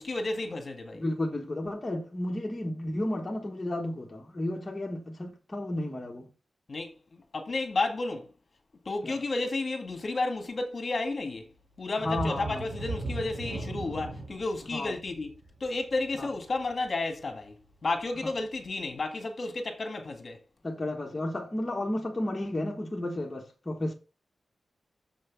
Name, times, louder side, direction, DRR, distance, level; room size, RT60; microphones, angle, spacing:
voice 1, 0.0-1.0 6.7-8.3 8.9-11.5 11.8-15.3 15.6-17.6 17.8-20.4, left 3 dB, 40° left, 1.8 m, -32 dB
voice 2, 0.9-6.3 9.0-9.2 12.0-12.7 14.7-15.0 16.2-16.3 18.2-18.3 20.6-23.9, left 1 dB, 20° left, 1.4 m, -32 dB
sound 1, 12.0-17.5 17.9-18.0 18.5-18.6, right 2 dB, 55° right, 2.2 m, -38 dB
6.9 x 6.2 x 5.9 m
wide cardioid pair, 165°, 0 cm